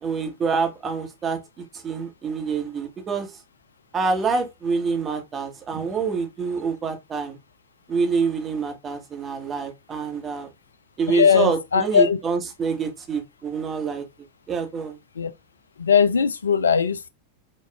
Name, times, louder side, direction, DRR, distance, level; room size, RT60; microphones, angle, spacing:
voice 1, 0.0-3.3 3.9-7.4 7.9-10.5 11.0-14.0 14.5-15.0, right 5 dB, 25° right, 0.9 m, -26 dB
voice 2, 11.1-12.2 15.2-15.3 15.8-17.1, left 7 dB, 70° left, 0.4 m, -19 dB
5.0 x 2.3 x 2.2 m
figure-of-eight pair, 90°, 0 cm